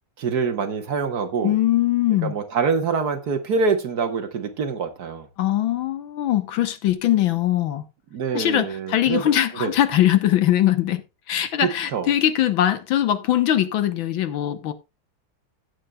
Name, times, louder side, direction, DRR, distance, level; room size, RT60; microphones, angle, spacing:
voice 1, 0.2-1.6 2.2-5.3 8.1-9.7 11.6-12.1, right 5 dB, 55° right, 1.6 m, -25 dB
voice 2, 1.4-2.3 5.4-7.8 8.3-11.0 11.3-14.7, left 12 dB, 75° left, 1.7 m, -21 dB
14.5 x 9.2 x 2.3 m
omnidirectional pair, 2.2 m